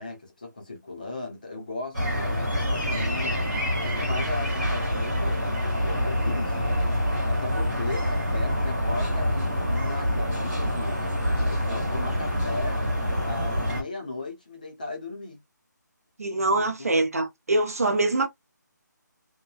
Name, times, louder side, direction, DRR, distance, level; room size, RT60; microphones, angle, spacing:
voice 1, 0.0-3.4 3.8-6.7 7.3-12.8 13.2-15.4 16.5-16.9, left 2 dB, 25° left, 0.7 m, -37 dB
sound 1, 1.9-13.8, equal, 5° right, 1.1 m, -26 dB
voice 2, 16.2-18.3, right 2 dB, 50° right, 0.7 m, -24 dB
2.9 x 2.2 x 2.3 m
figure-of-eight pair, 180°, 10 cm